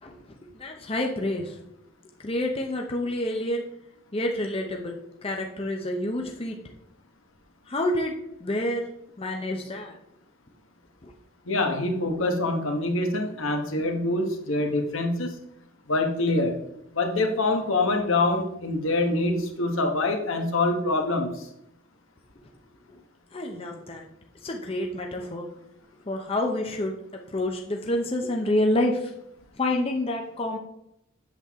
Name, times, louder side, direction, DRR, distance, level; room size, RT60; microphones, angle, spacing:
voice 1, 0.0-1.6 2.2-3.6 4.1-6.6 7.7-8.1 8.4-8.8 9.2-10.0 11.0-11.1 22.9-23.0 23.3-24.1 24.4-25.5 26.1-29.1 29.6-30.6, left 1 dB, 30° left, 1 dB, 0.8 m, -28 dB
voice 2, 11.5-15.3 15.9-16.6 16.9-21.4, left 2 dB, 70° left, 3 dB, 1.4 m, -25 dB
8.2 x 7.6 x 3.7 m, 0.78 s
head